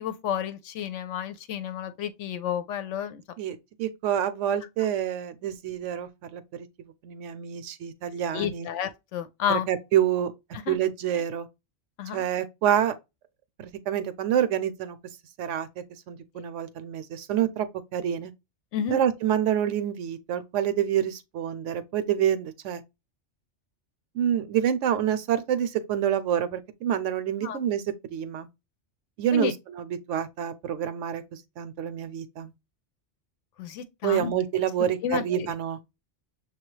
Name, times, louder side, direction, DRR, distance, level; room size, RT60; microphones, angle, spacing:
voice 1, 0.0-3.2 8.3-9.7 10.7-10.8 12.0-12.2 18.7-19.0 27.4-27.6 29.3-29.5 33.6-34.3 35.0-35.5, left 8 dB, 80° left, 0.9 m, -31 dB
voice 2, 3.4-6.7 7.0-8.7 9.5-10.3 10.7-11.5 12.1-12.9 13.6-15.0 15.4-18.3 18.9-22.8 24.1-27.8 28.1-28.5 29.2-32.5 34.0-35.8, right 10 dB, 80° right, 0.9 m, -27 dB
6.3 x 2.3 x 3.0 m
omnidirectional pair, 1.3 m